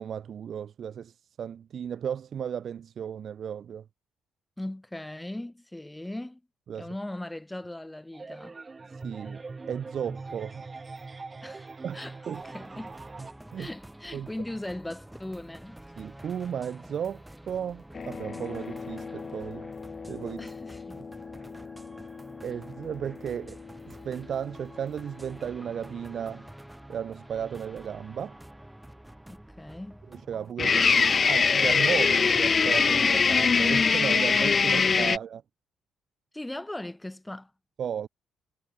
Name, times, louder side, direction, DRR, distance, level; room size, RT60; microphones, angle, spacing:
voice 1, 0.0-3.8 6.7-6.9 8.9-9.4 9.7-10.6 11.8-12.0 12.3-12.4 13.5-13.7 14.1-14.3 16.0-19.7 20.1-20.5 22.4-23.6 23.9-26.5 26.9-28.4 30.1-35.4 37.8-38.1, right 8 dB, 60° right, 1.2 m, -34 dB
voice 2, 4.6-6.4 6.7-8.6 11.4-12.2 12.4-13.0 13.6-15.8 20.4-21.0 29.3-30.0 33.0-33.4 35.1-35.2 36.3-37.5, left 1 dB, 10° left, 1.9 m, -39 dB
sound 1, 8.1-13.3, right 3 dB, 25° right, 6.2 m, -42 dB
sound 2, 12.3-30.5, right 1 dB, 5° right, 3.9 m, -48 dB
sound 3, 17.9-23.6 30.6-35.2, left 5 dB, 40° left, 1.1 m, -25 dB
cardioid pair, 90°, 0 cm